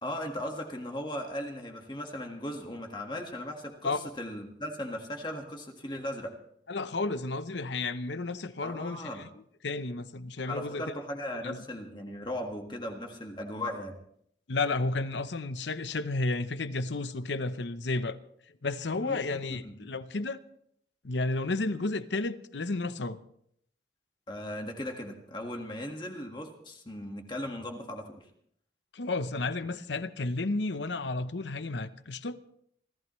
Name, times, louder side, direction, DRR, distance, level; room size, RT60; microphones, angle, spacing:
voice 1, 0.0-6.3 8.6-9.3 10.5-13.9 19.0-19.7 24.3-28.2, left 1 dB, 25° left, 1.7 m, -37 dB
voice 2, 6.7-9.3 9.6-10.8 11.4-11.6 14.5-18.2 18.6-20.4 21.0-23.2 28.9-32.4, left 3 dB, 80° left, 0.8 m, -32 dB
27.0 x 14.5 x 3.2 m
head